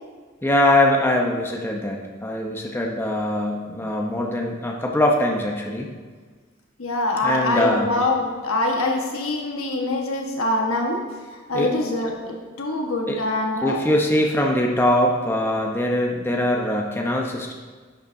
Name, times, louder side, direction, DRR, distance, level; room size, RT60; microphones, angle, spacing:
voice 1, 0.4-5.9 7.2-7.9 11.5-11.7 13.1-13.2 13.6-17.5, left 1 dB, 10° left, 0 dB, 0.8 m, -22 dB
voice 2, 6.8-11.0 11.5-13.8, left 2 dB, 80° left, 1 dB, 1.3 m, -24 dB
11.0 x 6.7 x 2.7 m, 1.5 s
head